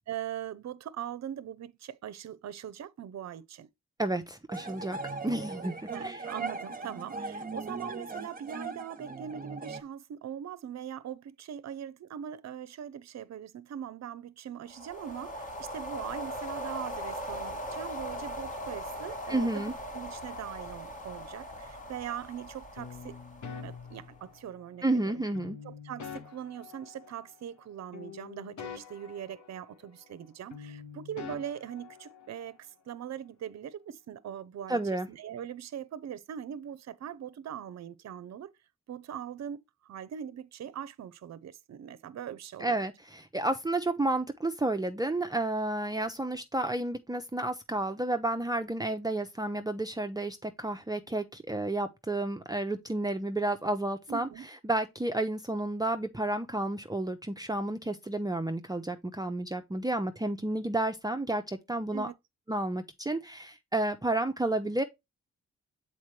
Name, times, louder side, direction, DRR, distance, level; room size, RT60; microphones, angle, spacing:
voice 1, 0.1-3.7 5.9-19.6 19.9-23.2 23.6-25.1 25.6-38.5 38.9-42.8 54.1-54.5 61.9-62.1, right 9 dB, 65° right, 0.6 m, -41 dB
voice 2, 4.0-5.0 5.2-6.2 19.3-19.7 24.8-25.6 34.7-35.1 42.6-62.1 62.5-64.8, right 2 dB, 15° right, 0.6 m, -31 dB
sound 1, 4.5-9.8, right 3 dB, 30° right, 1.0 m, -39 dB
sound 2, 14.7-24.2, equal, 25° left, 1.4 m, -40 dB
sound 3, 22.8-24.8 25.3-27.7 27.9-30.2 30.5-32.6, left 7 dB, 80° left, 1.1 m, -46 dB
7.2 x 4.4 x 3.2 m
cardioid pair, 65°, 29 cm